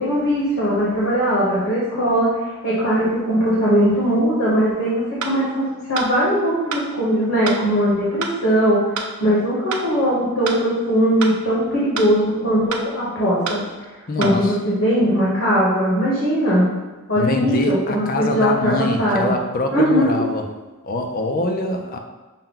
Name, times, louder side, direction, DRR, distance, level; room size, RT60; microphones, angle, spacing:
voice 1, 0.0-2.3 2.6-8.8 9.2-13.6 14.2-16.7 17.1-19.3 19.7-20.1, equal, 65° left, -7 dB, 1.2 m, -19 dB
sound 1, 5.2-5.3 6.0-6.1 6.7-6.9 7.5-7.6 8.2-8.3 9.0-9.1 9.7-9.8 10.5-10.6 11.2-11.4 12.0-12.1 12.7-12.9 13.5-13.6 14.2-14.4, right 5 dB, 70° right, 0.5 m, -27 dB
voice 2, 14.1-14.6 17.2-20.5 20.8-22.0, left 2 dB, 40° left, 4 dB, 0.5 m, -24 dB
5.6 x 2.2 x 3.7 m, 1.2 s
head